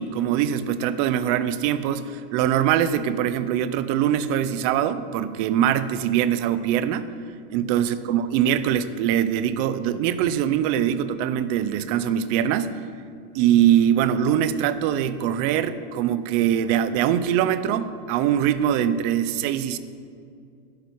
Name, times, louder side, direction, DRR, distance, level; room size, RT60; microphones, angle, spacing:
voice 1, 0.0-7.1 7.5-12.7 13.3-19.8, right 10 dB, 35° right, 13 dB, 0.5 m, -22 dB
12.0 x 10.5 x 4.6 m, 2.3 s
supercardioid pair, 170°, 32 cm